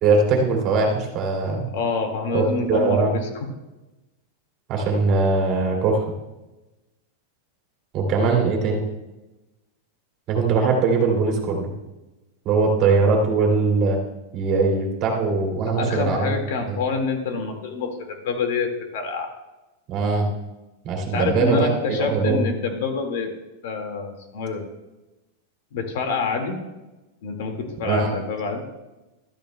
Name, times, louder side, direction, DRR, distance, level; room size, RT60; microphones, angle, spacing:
voice 1, 0.0-1.7 2.3-3.1 4.7-6.0 7.9-8.8 10.3-11.7 12.5-14.0 14.3-16.3 16.7-16.8 19.9-20.3 20.8-22.4 27.9-28.1, right 4 dB, 35° right, 0 dB, 2.4 m, -21 dB
voice 2, 1.7-3.5 8.2-8.3 15.6-19.3 21.1-23.3 23.6-24.6 25.7-26.6 27.2-28.6, left 4 dB, 65° left, 4 dB, 1.9 m, -27 dB
15.5 x 12.5 x 2.2 m, 1.0 s
supercardioid pair, 160°, 0 cm